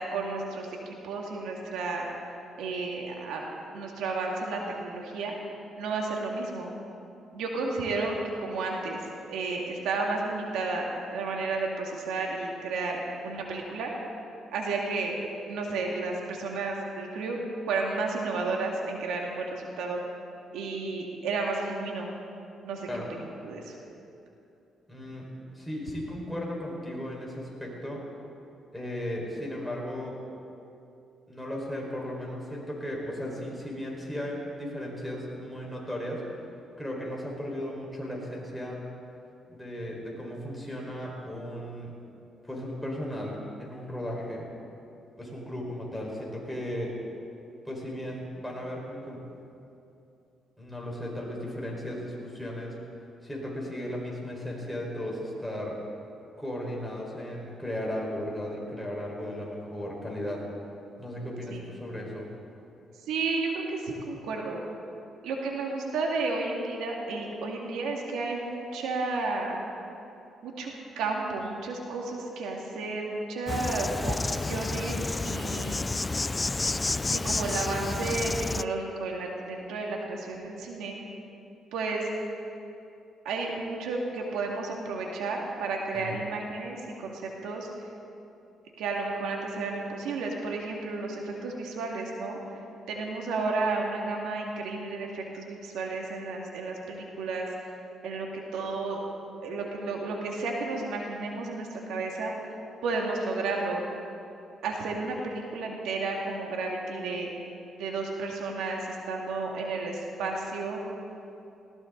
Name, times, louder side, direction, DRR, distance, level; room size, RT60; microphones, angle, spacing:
voice 1, 0.0-2.1 2.6-3.4 3.7-5.3 5.8-6.7 7.3-9.0 9.3-13.9 14.5-15.2 15.5-17.4 17.7-20.0 20.5-22.1 22.6-22.9 23.2-23.7 61.5-61.6 63.1-64.6 65.2-69.6 70.4-75.9 76.6-76.7 77.1-81.0 81.7-82.1 83.2-87.7 88.8-92.4 92.9-97.5 98.0-98.3 98.5-99.0 99.4-102.3 102.8-103.8 104.6-107.3 107.8-108.8 109.1-110.8, right 3 dB, 85° right, 0 dB, 2.2 m, -32 dB
voice 2, 24.9-28.0 28.7-30.2 31.3-36.2 36.8-38.8 39.5-41.9 42.5-44.5 45.2-46.9 47.6-49.2 50.6-52.8 53.2-55.8 56.4-60.4 61.0-62.3 85.9-86.2, equal, ahead, -3 dB, 4.8 m, -36 dB
Insect, 73.5-78.6, left 3 dB, 20° left, 0.3 m, -30 dB
20.0 x 17.5 x 4.0 m, 2.7 s
cardioid pair, 90°, 0 cm